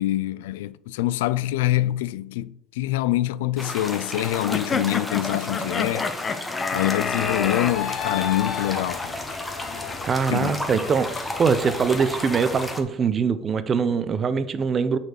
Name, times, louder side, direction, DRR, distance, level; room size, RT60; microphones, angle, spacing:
voice 1, 0.0-6.1 6.7-9.1 10.3-10.6, left 14 dB, 85° left, 0.3 m, -25 dB
sound 1, 3.6-12.8, left 1 dB, 10° left, 1.2 m, -33 dB
sound 2, 4.5-7.7, left 5 dB, 30° left, 0.6 m, -28 dB
sound 3, 7.1-12.7, left 7 dB, 50° left, 1.1 m, -35 dB
voice 2, 10.0-15.0, right 6 dB, 35° right, 0.7 m, -23 dB
6.4 x 4.2 x 6.5 m
supercardioid pair, 95°, 0 cm